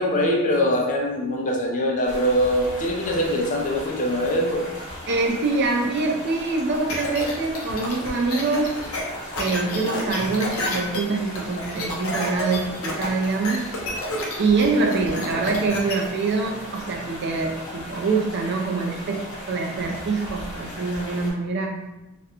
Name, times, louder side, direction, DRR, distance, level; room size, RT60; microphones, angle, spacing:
voice 1, 0.0-4.7, equal, 40° left, 0 dB, 0.4 m, -23 dB
sound 1, 2.0-21.3, equal, 55° left, 1.0 m, -37 dB
voice 2, 5.1-8.7 9.4-13.7 14.4-21.8, right 3 dB, 55° right, 1 dB, 0.4 m, -24 dB
sound 2, 6.9-15.9, left 1 dB, 80° left, 0.6 m, -30 dB
2.5 x 2.1 x 2.8 m, 0.97 s
head